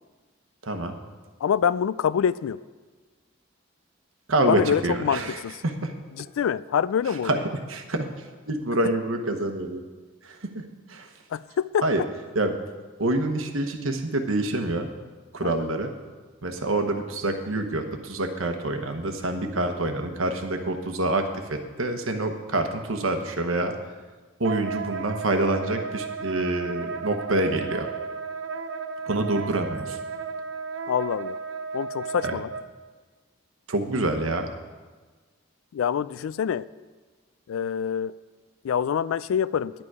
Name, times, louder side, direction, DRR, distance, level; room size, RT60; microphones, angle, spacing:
voice 1, 0.6-1.0 4.3-5.9 7.2-7.4 7.7-9.8 10.2-11.1 11.8-12.0 12.3-12.6 13.0-14.9 15.3-15.9 16.4-23.7 24.4-27.9 29.1-30.0 32.2-32.4 33.7-34.5, right 2 dB, 85° right, 5 dB, 1.1 m, -27 dB
voice 2, 1.4-2.6 4.5-5.6 6.2-7.3 11.3-11.8 15.4-15.7 30.9-31.4 31.7-32.5 35.7-36.7 37.5-38.1 38.6-39.7, left 8 dB, 90° left, 18 dB, 0.3 m, -25 dB
Wind instrument woodwind instrument, 24.4-32.6, right 5 dB, 70° right, 0.6 m, -34 dB
10.5 x 9.0 x 4.8 m, 1.4 s
head